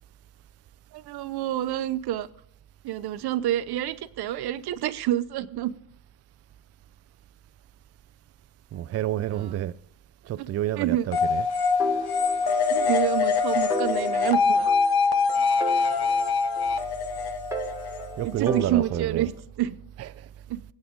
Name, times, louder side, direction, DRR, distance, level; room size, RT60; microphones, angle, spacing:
voice 1, 0.9-2.3 2.8-5.7 9.4-9.5 10.4-10.5 10.8-11.1 12.7-14.7 18.2-19.3 19.6-19.8 20.5-20.6, right 13 dB, 55° right, 0.8 m, -28 dB
voice 2, 8.7-9.7 10.3-11.5 18.2-19.3 20.0-20.1, right 12 dB, 35° right, 0.5 m, -29 dB
sound 1, 11.1-18.6, left 5 dB, 55° left, 1.2 m, -24 dB
sound 2, 11.8-13.0 13.3-13.4 13.7-15.2 15.6-17.1 17.5-19.3, equal, 5° right, 1.3 m, -36 dB
20.5 x 8.6 x 3.7 m
cardioid pair, 115°, 47 cm